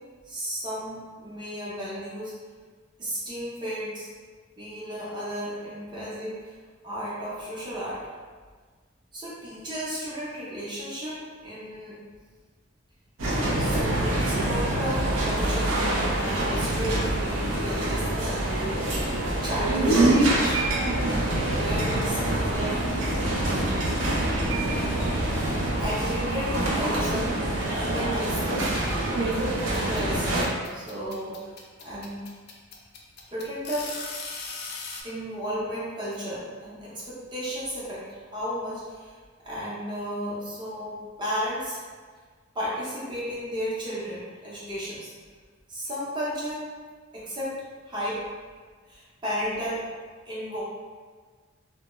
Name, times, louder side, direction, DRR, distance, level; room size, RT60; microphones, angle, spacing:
voice 1, 0.2-2.3 3.0-4.1 4.6-6.5 6.8-8.0 9.1-11.1 11.4-12.0 13.6-15.7 16.1-18.7 19.2-20.6 21.1-23.0 25.8-27.3 27.7-28.7 29.2-30.4 30.7-31.5 31.8-32.2 33.3-33.9 35.0-39.2 39.4-41.8 42.5-45.1 45.7-46.6 47.1-47.5 47.9-48.2 48.9-49.8 50.3-50.6, equal, 25° right, -8 dB, 0.6 m, -34 dB
sound 1, 13.2-30.4, right 1 dB, 80° right, 0.5 m, -25 dB
sound 2, 29.7-35.0, left 4 dB, 50° left, 0.4 m, -38 dB
2.2 x 2.0 x 3.0 m, 1.5 s
head